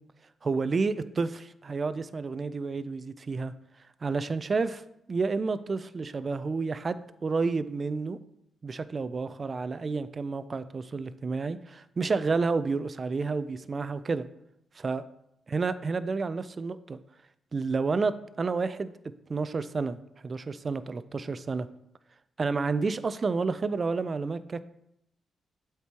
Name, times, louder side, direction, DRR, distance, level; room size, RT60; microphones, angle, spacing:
voice 1, 0.4-3.5 4.0-4.8 5.1-8.2 8.6-14.3 14.8-15.0 15.5-17.0 17.5-18.9 19.3-20.0 20.2-21.7 22.4-24.6, right 4 dB, 45° right, 14 dB, 0.4 m, -30 dB
8.1 x 4.5 x 2.9 m, 0.79 s
supercardioid pair, 55°, 0 cm